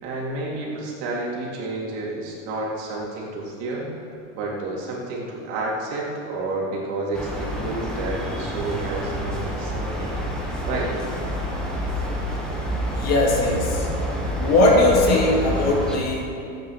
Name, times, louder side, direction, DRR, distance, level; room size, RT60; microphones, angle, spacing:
voice 1, 0.0-3.9 4.3-10.1 10.7-10.9, right 2 dB, 60° right, -4 dB, 3.5 m, -30 dB
sound 1, 7.1-16.0, equal, ahead, 1.7 m, -28 dB
voice 2, 13.0-13.9 14.4-16.5, left 2 dB, 40° left, -1 dB, 2.5 m, -19 dB
14.0 x 9.0 x 5.3 m, 2.5 s
supercardioid pair, 140°, 39 cm